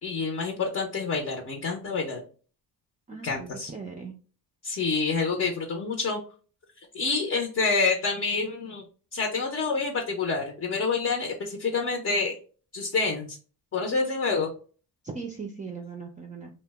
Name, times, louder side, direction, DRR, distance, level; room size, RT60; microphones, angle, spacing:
voice 1, 0.0-2.2 3.2-3.7 4.6-6.2 6.9-8.8 9.1-12.4 12.7-13.4 13.7-14.5, left 4 dB, 40° left, 2 dB, 0.6 m, -27 dB
voice 2, 3.1-4.1 15.0-16.5, right 5 dB, 20° right, 1 dB, 0.4 m, -39 dB
2.8 x 2.1 x 3.3 m, 0.39 s
cardioid pair, 110°, 38 cm